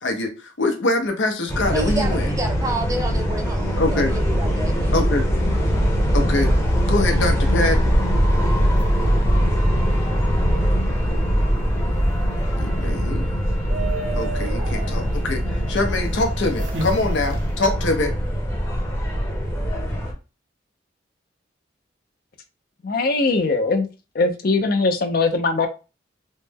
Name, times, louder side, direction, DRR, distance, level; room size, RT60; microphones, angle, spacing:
voice 1, 0.0-2.3 3.8-4.1 4.9-5.3 6.1-6.5 6.9-7.9 12.6-13.3 14.2-18.1, left 2 dB, 85° left, 0.8 m, -24 dB
sound 1, 1.5-20.1, equal, 15° left, 0.7 m, -21 dB
voice 2, 1.7-5.0, right 2 dB, 20° right, 0.4 m, -29 dB
sound 2, 6.5-17.8, right 3 dB, 70° right, 0.7 m, -38 dB
voice 3, 22.8-23.9 24.1-25.7, left 3 dB, 50° left, 0.5 m, -20 dB
3.2 x 2.1 x 3.3 m
head